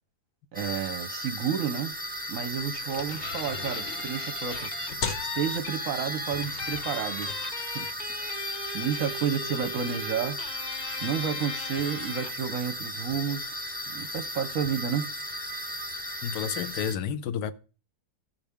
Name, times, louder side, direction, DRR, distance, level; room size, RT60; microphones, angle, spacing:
Scorpio Season, 0.5-16.9, equal, 10° right, 0.4 m, -36 dB
voice 1, 0.5-1.9 2.3-4.7 5.2-7.3 7.6-7.9 8.2-8.5 8.7-10.4 11.0-13.5 13.9-15.1, right 8 dB, 60° right, 1.0 m, -31 dB
sound 1, 1.9-16.9, left 6 dB, 60° left, 1.0 m, -44 dB
Guitar, 3.2-12.5, left 3 dB, 35° left, 0.7 m, -38 dB
voice 2, 16.2-17.5, left 8 dB, 80° left, 1.2 m, -30 dB
13.5 x 5.6 x 3.5 m
omnidirectional pair, 1.8 m